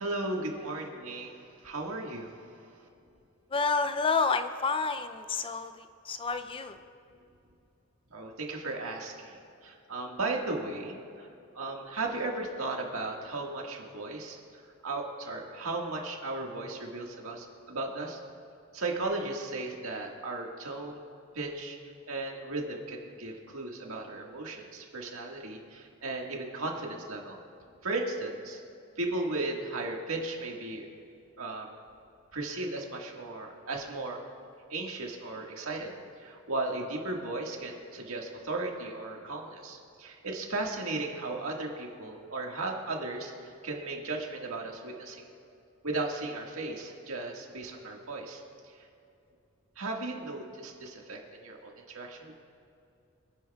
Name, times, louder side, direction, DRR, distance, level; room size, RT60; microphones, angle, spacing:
voice 1, 0.0-2.9 8.1-11.3 11.5-18.2 18.7-21.0 21.3-27.4 27.8-28.6 29.0-30.9 31.4-31.7 32.3-34.2 34.7-45.3 45.8-48.9 49.8-52.3, right 2 dB, 75° right, 0 dB, 1.7 m, -36 dB
voice 2, 3.5-6.8, left 4 dB, 25° left, 9 dB, 0.4 m, -29 dB
26.0 x 10.0 x 2.3 m, 2.7 s
head